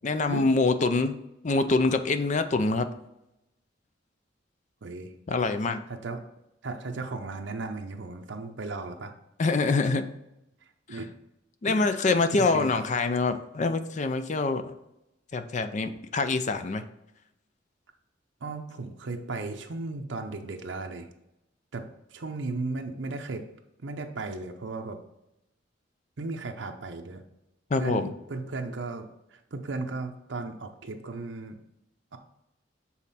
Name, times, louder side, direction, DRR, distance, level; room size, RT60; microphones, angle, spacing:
voice 1, 0.0-1.2 1.4-2.9 5.3-5.8 9.4-10.0 11.6-14.7 15.3-16.8 27.7-28.1, left 3 dB, 40° left, 10 dB, 0.4 m, -25 dB
voice 2, 4.8-5.1 5.9-6.2 6.6-9.1 10.9-11.1 11.7-12.8 18.4-21.1 21.7-23.4 23.8-25.0 26.2-27.2 27.7-31.6 32.1-32.2, right 3 dB, 80° right, 4 dB, 0.7 m, -36 dB
7.3 x 4.1 x 4.1 m, 0.86 s
head